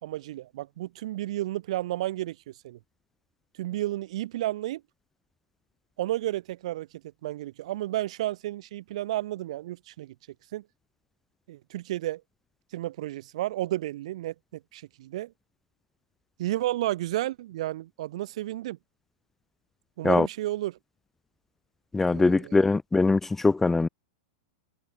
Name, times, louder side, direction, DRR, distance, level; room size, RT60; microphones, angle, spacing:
voice 1, 0.0-2.8 3.6-4.8 6.0-6.9 7.2-10.1 10.5-10.6 11.5-12.2 12.7-15.3 16.4-18.8 20.0-20.8 22.1-22.6, right 15 dB, 65° right, 4.2 m, -32 dB
voice 2, 21.9-23.9, left 3 dB, 5° left, 0.4 m, -22 dB
supercardioid pair, 145°, 4 cm